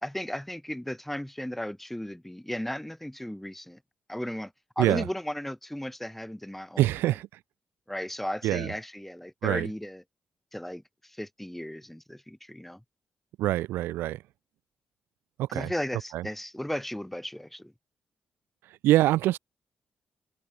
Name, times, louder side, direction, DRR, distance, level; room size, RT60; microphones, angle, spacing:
voice 1, 0.0-3.8 4.1-7.1 7.9-10.0 10.5-12.8 15.5-17.7, left 1 dB, 5° left, 1.8 m, -35 dB
voice 2, 6.8-7.3 8.4-8.7 9.4-9.7 13.4-14.2 15.4-15.7 16.1-16.3 18.8-19.4, right 15 dB, 85° right, 0.5 m, -24 dB
supercardioid pair, 45°, 4 cm